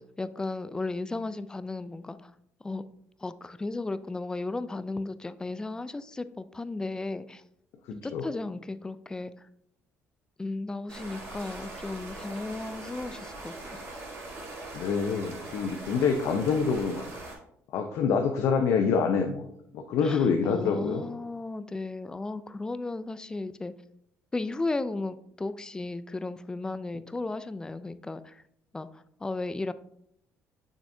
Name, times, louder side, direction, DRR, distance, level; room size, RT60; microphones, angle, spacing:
voice 1, 0.0-2.3 2.6-2.8 3.2-7.4 7.9-9.3 10.4-13.8 20.0-23.7 24.3-28.4 28.7-29.7, left 2 dB, 15° left, 14 dB, 0.3 m, -35 dB
voice 2, 7.8-8.3 14.7-17.0 17.7-19.5 19.7-21.1, left 5 dB, 75° left, 4 dB, 0.6 m, -26 dB
sound 1, 10.9-17.3, right 2 dB, 55° right, 2.7 m, -41 dB
6.7 x 6.2 x 2.7 m, 0.73 s
cardioid pair, 105°, 5 cm